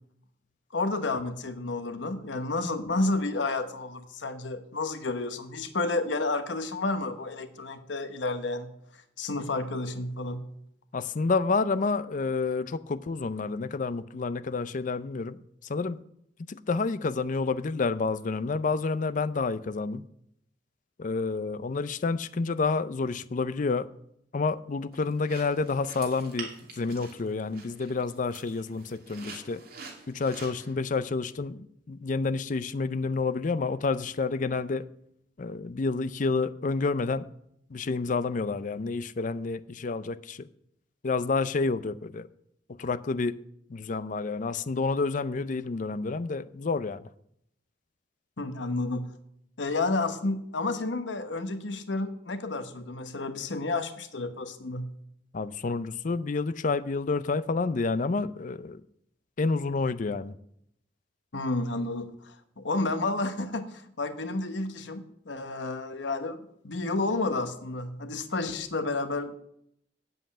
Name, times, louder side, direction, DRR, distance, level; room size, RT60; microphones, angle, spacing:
voice 1, 0.7-8.8 9.2-10.5 48.4-49.2 49.6-55.0 61.3-69.4, left 2 dB, 85° left, 1.0 m, -31 dB
voice 2, 10.9-15.4 15.7-16.0 16.5-20.0 21.0-23.9 24.3-29.6 30.1-34.9 35.4-37.3 37.7-40.5 41.0-42.3 42.8-43.4 43.7-47.0 55.3-58.8 59.4-60.3, left 4 dB, 45° left, 0.5 m, -29 dB
sound 1, 24.9-30.7, right 4 dB, 55° right, 2.8 m, -46 dB
7.8 x 7.7 x 8.7 m
head